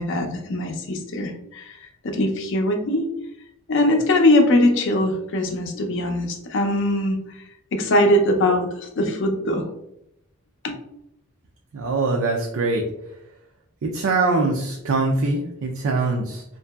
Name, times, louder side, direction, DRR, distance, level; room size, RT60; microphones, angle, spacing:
voice 1, 0.0-1.8 2.0-3.1 3.7-7.2 7.7-9.6 10.6-10.7, left 1 dB, 55° left, 4 dB, 0.5 m, -21 dB
voice 2, 11.7-12.8 13.8-16.4, right 3 dB, 60° right, 1 dB, 0.4 m, -23 dB
2.8 x 2.6 x 2.2 m, 0.80 s
head